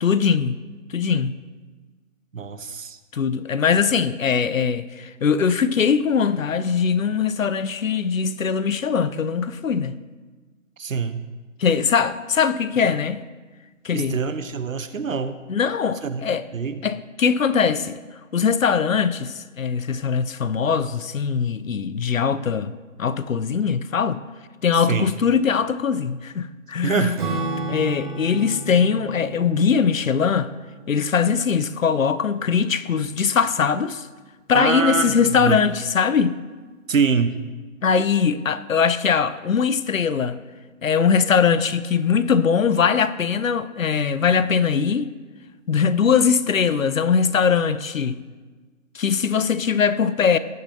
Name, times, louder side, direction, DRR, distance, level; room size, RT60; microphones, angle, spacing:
voice 1, 0.0-0.6 0.9-1.3 3.1-10.0 11.6-13.2 13.8-14.2 15.5-16.5 16.8-18.0 18.3-22.7 23.0-24.2 24.6-27.1 27.7-30.5 30.9-34.1 34.5-36.4 37.8-40.4 40.8-45.1 45.7-48.2 48.9-50.4, left 6 dB, 75° left, 0.7 m, -21 dB
voice 2, 2.3-3.0 10.8-11.3 13.9-15.4 16.0-16.2 16.5-16.8 24.9-25.1 26.8-27.2 34.5-35.6 36.9-37.4, right 5 dB, 75° right, 0.9 m, -24 dB
Acoustic guitar / Strum, 27.2-32.0, right 3 dB, 35° right, 1.7 m, -33 dB
17.0 x 6.7 x 2.8 m
figure-of-eight pair, 165°, 40 cm